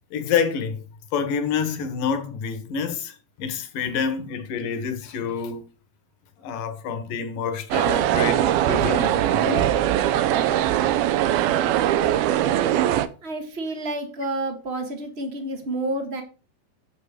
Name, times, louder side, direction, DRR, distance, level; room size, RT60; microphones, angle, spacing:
voice 1, 0.1-0.8 1.1-5.7 6.4-9.7, left 6 dB, 65° left, 2.7 m, -27 dB
sound 1, 7.7-13.1, right 12 dB, 80° right, 2.5 m, -21 dB
voice 2, 13.2-16.2, right 2 dB, 45° right, 0.8 m, -29 dB
9.0 x 7.8 x 5.0 m
omnidirectional pair, 4.6 m